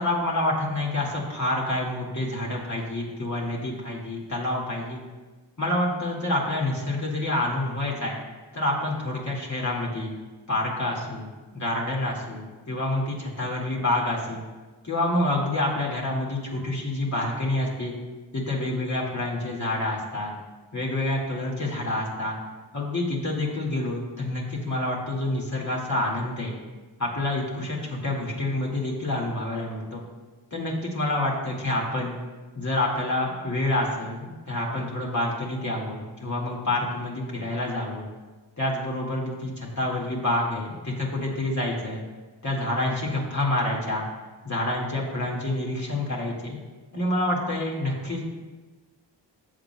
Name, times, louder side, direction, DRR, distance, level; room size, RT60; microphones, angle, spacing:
voice 1, 0.0-5.0 5.6-8.2 8.5-10.1 10.5-14.4 14.8-17.9 18.3-20.3 20.7-22.4 22.7-26.5 27.0-30.0 30.5-32.2 32.6-38.1 38.6-42.0 42.4-44.1 44.4-46.6 46.9-48.2, left 1 dB, 35° left, -4 dB, 1.9 m, -28 dB
14.5 x 7.6 x 2.2 m, 1.3 s
wide cardioid pair, 70°, 46 cm